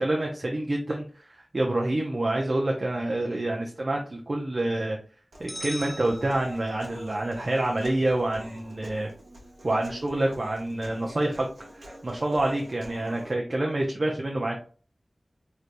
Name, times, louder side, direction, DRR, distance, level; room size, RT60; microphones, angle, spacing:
voice 1, 0.0-5.0 5.4-9.1 9.6-11.4 11.7-14.6, right 1 dB, 60° right, 0 dB, 0.5 m, -27 dB
Human voice, 5.3-13.3, right 1 dB, 80° right, 1.1 m, -46 dB
sound 1, 5.5-7.0, equal, ahead, 0.4 m, -40 dB
3.3 x 2.8 x 2.5 m, 0.41 s
wide cardioid pair, 40°, 0 cm